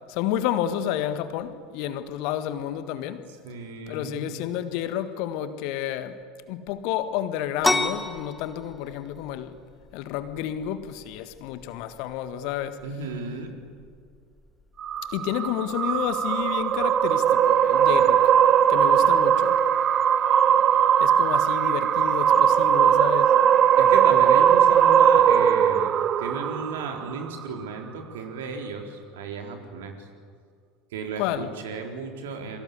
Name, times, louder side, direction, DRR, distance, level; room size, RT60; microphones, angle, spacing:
voice 1, 0.1-3.2 3.9-6.2 6.5-9.5 9.9-12.8 15.1-18.2 18.7-19.6 21.0-23.3 31.1-31.5, left 11 dB, 50° left, 1.7 m, -30 dB
voice 2, 3.4-4.4 12.8-13.6 23.8-25.9 26.2-30.0 30.9-32.6, right 4 dB, 60° right, 4.0 m, -34 dB
sound 1, 7.6-17.0, left 2 dB, 5° left, 1.6 m, -34 dB
sound 2, 14.8-27.3, right 9 dB, 35° right, 0.9 m, -19 dB
29.0 x 23.5 x 8.4 m
figure-of-eight pair, 75°, 0 cm